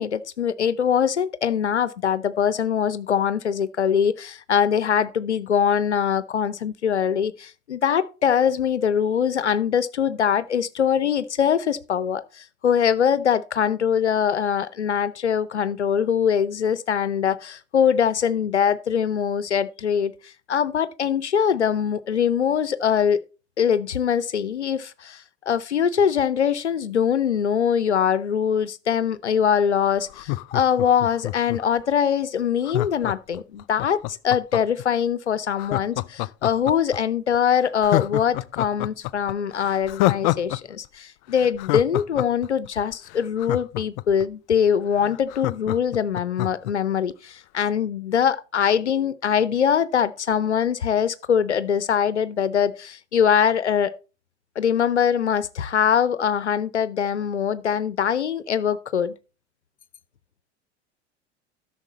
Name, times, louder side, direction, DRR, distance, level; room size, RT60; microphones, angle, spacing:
voice 1, 0.0-23.2 23.6-53.9 54.6-59.1, left 8 dB, 80° left, 0.6 m, -23 dB
Laughter, 30.1-31.8 32.6-34.8 35.6-37.0 37.3-37.4 37.8-40.6 40.8-40.9 41.3-44.2 44.7-44.8 45.0-46.7 47.1-47.2, left 20 dB, 40° left, 0.4 m, -27 dB
12.5 x 6.4 x 4.1 m
figure-of-eight pair, 75°, 34 cm